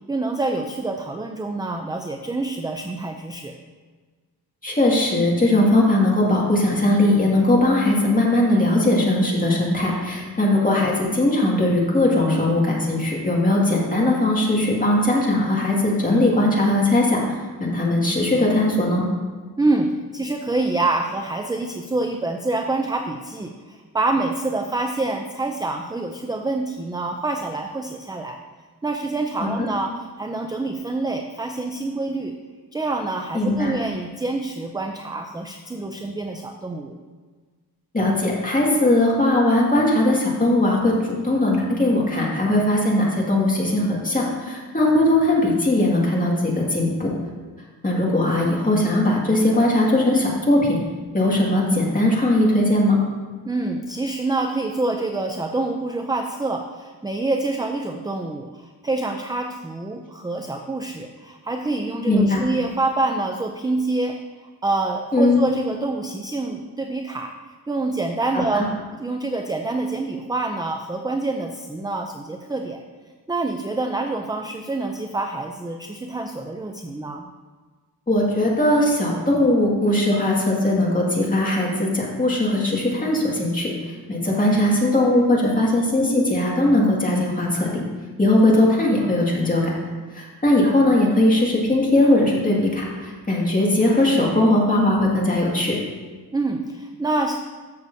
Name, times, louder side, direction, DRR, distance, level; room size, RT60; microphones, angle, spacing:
voice 1, 0.1-3.5 19.6-28.4 28.8-32.4 32.7-37.0 53.4-67.4 67.7-72.8 73.3-77.3 96.3-97.4, right 2 dB, 10° right, 4 dB, 0.4 m, -26 dB
voice 2, 4.6-19.0 29.4-29.7 33.3-33.7 37.9-47.1 47.8-50.8 51.1-53.0 62.1-62.4 65.1-65.5 68.3-68.7 78.1-87.8 88.2-89.7 90.1-95.8, left 1 dB, 20° left, -4 dB, 2.1 m, -19 dB
13.5 x 6.5 x 2.7 m, 1.4 s
wide cardioid pair, 125°, 38 cm